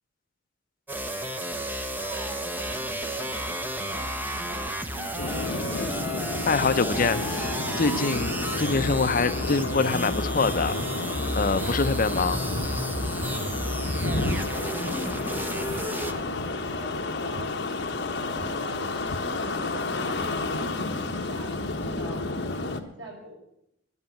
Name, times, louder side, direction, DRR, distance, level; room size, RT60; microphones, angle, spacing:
sound 1, 0.9-16.1, equal, 10° right, 0.9 m, -32 dB
voice 1, 1.9-5.6 13.6-15.1 15.4-18.0 18.4-22.3 22.6-23.3, right 2 dB, 85° right, 4.6 m, -45 dB
sound 2, 3.3-3.6 3.9-4.2 4.5-4.8 5.2-5.4 5.7-6.0 7.1-7.3 8.5-8.8 9.6-9.9 10.6-10.9, right 3 dB, 45° right, 7.5 m, -45 dB
sound 3, 5.2-22.8, left 2 dB, 65° left, 1.2 m, -31 dB
voice 2, 6.5-10.8 11.3-12.4, left 4 dB, 45° left, 0.6 m, -25 dB
11.0 x 10.0 x 8.4 m
head